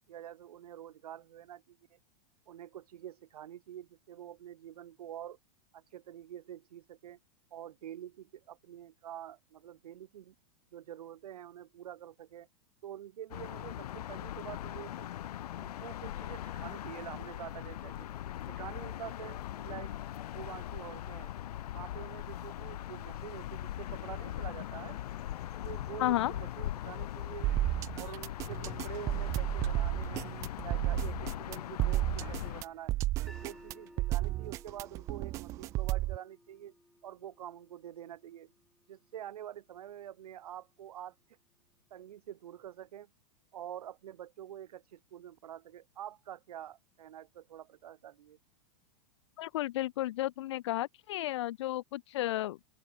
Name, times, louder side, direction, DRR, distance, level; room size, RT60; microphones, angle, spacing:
voice 1, 0.1-2.0 2.5-5.4 5.7-7.2 7.5-10.3 10.7-12.5 12.8-15.1 15.6-18.1 18.5-19.9 20.3-21.3 21.7-25.0 25.6-27.6 28.0-30.3 30.6-32.9 33.3-36.7 37.0-38.5 38.9-41.4 41.9-43.1 43.5-48.4, right 11 dB, 75° right, 4.2 m, -47 dB
sound 1, 13.3-32.6, left 12 dB, 85° left, 0.8 m, -40 dB
voice 2, 26.0-26.3 49.4-52.6, left 15 dB, 50° left, 0.6 m, -32 dB
sound 2, 27.4-36.2, right 18 dB, 15° right, 0.5 m, -32 dB
sound 3, 33.3-39.4, left 1 dB, ahead, 3.0 m, -58 dB
open air
supercardioid pair, 180°, 19 cm